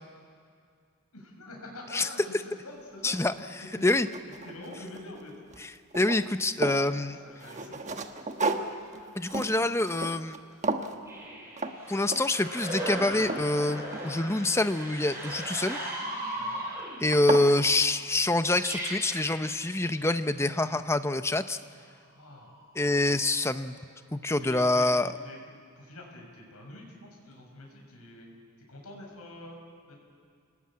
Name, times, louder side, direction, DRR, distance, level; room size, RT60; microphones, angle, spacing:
voice 1, 1.1-3.2 3.6-3.9 4.4-5.3 7.1-8.0 16.3-16.6 22.1-22.5 24.3-24.9 25.2-25.4 25.8-28.3 28.7-29.6 29.9-30.0, left 1 dB, 85° left, 0 dB, 6.1 m, -45 dB
voice 2, 3.0-3.3 3.8-4.1 5.6-7.2 9.1-10.4 11.9-15.8 17.0-21.6 22.8-23.8 24.1-25.1, left 2 dB, 10° left, 10 dB, 0.7 m, -26 dB
sound 1, 3.2-3.3 3.8-5.2 5.5-6.9 7.4-10.4 10.6-11.0 11.6-11.8 12.1-12.4 12.9-14.4 15.9-16.3 16.8-16.9 17.1-17.5, right 3 dB, 30° right, 1.2 m, -34 dB
sound 2, 11.1-17.3 18.3-20.0 22.4-23.2, right 1 dB, 10° right, 7.3 m, -37 dB
29.0 x 19.5 x 8.6 m, 2.2 s
head